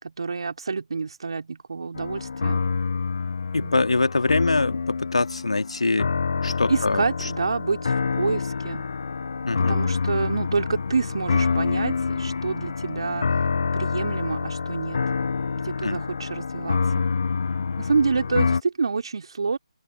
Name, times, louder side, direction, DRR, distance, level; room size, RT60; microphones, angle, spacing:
voice 1, 0.0-2.6 3.6-3.7 6.7-8.9 9.6-13.5 13.7-15.0 15.5-17.1 17.8-19.6, right 4 dB, 50° right, 3.2 m, -28 dB
sound 1, 2.0-18.6, left 5 dB, 50° left, 0.9 m, -27 dB
voice 2, 3.5-6.1 6.4-7.3 9.4-9.8 15.8-16.0 18.3-18.4, left 3 dB, 65° left, 1.9 m, -24 dB
open air
figure-of-eight pair, 150°, 4 cm